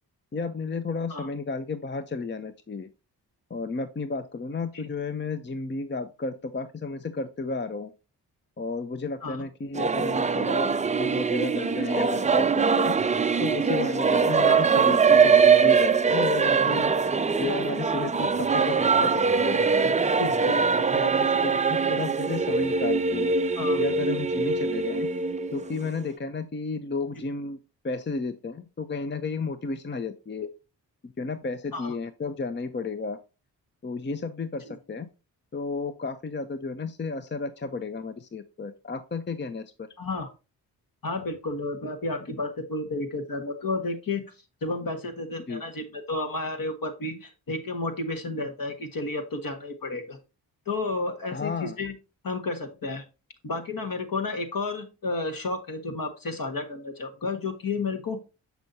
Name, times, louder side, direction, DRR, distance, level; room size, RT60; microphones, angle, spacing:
voice 1, 0.3-2.9 3.5-7.9 8.6-10.7 11.0-12.9 13.4-16.9 17.4-19.6 20.4-23.3 23.8-25.1 25.5-27.6 27.8-30.5 31.0-33.2 33.8-35.1 35.5-39.9 45.5-45.6 51.3-51.8, left 3 dB, 25° left, 11 dB, 0.7 m, -32 dB
Singing / Musical instrument, 9.7-26.1, right 5 dB, 20° right, 0.4 m, -22 dB
voice 2, 40.0-40.3 41.0-44.2 44.6-50.2 50.6-51.9 52.2-53.0 53.4-58.2, left 3 dB, 50° left, 6 dB, 1.7 m, -31 dB
6.8 x 6.0 x 2.8 m, 0.30 s
supercardioid pair, 45°, 42 cm